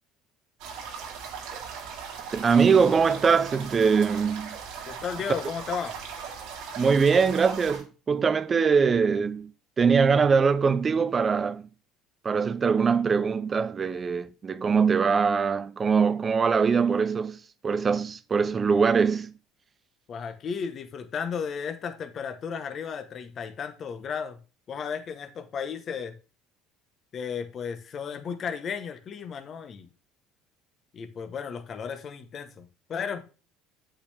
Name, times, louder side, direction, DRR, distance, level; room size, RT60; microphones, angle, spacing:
sound 1, 0.6-7.8, right 6 dB, 75° right, 2.4 m, -39 dB
voice 1, 2.3-4.6 6.8-9.5 9.8-11.6 12.2-19.3, right 5 dB, 25° right, 0.6 m, -22 dB
voice 2, 4.9-6.0 20.1-24.4 24.7-26.1 27.1-29.9 30.9-33.2, left 6 dB, 40° left, 1.0 m, -34 dB
8.3 x 5.7 x 3.4 m
cardioid pair, 125°, 0 cm